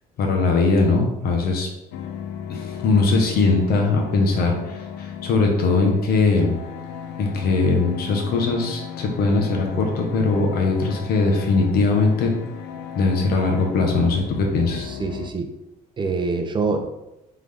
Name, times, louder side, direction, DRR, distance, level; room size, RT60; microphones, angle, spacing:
voice 1, 0.2-1.7 2.5-6.6 7.2-12.3 12.9-14.9, left 3 dB, 65° left, 1 dB, 1.1 m, -20 dB
sound 1, 1.9-15.3, left 8 dB, 85° left, 0.4 m, -36 dB
voice 2, 14.9-15.5 16.0-16.8, right 4 dB, 30° right, 5 dB, 0.6 m, -25 dB
3.8 x 3.3 x 3.5 m, 0.91 s
cardioid pair, 110°, 17 cm